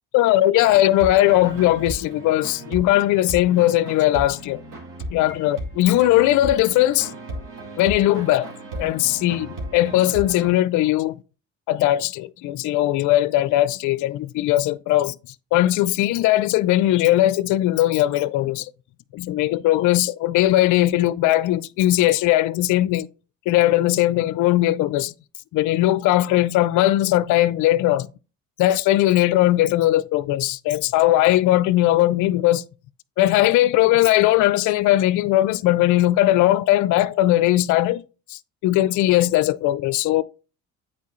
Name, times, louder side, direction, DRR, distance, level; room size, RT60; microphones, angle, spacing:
voice 1, 0.1-4.6 5.1-7.1 7.8-8.5 8.8-11.2 11.7-15.2 15.5-18.7 19.1-23.1 23.5-25.1 25.5-28.1 28.6-32.6 33.2-38.0 38.3-40.2, left 15 dB, 60° left, 0.5 m, -19 dB
sound 1, 0.7-10.5, right 1 dB, 65° right, 2.3 m, -35 dB
8.3 x 4.5 x 3.1 m
supercardioid pair, 90°, 34 cm